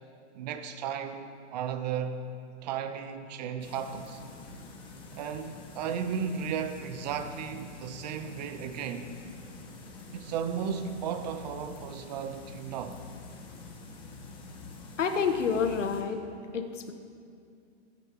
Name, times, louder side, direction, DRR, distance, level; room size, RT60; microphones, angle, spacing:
voice 1, 0.3-2.2 2.6-4.2 5.1-9.1 10.1-13.0, right 7 dB, 35° right, 0.8 m, -35 dB
sound 1, 3.6-16.0, left 3 dB, 15° left, 1.3 m, -47 dB
voice 2, 15.0-16.2 16.5-16.9, left 6 dB, 85° left, 1.3 m, -28 dB
24.5 x 9.6 x 3.0 m
hypercardioid pair, 150°, 36 cm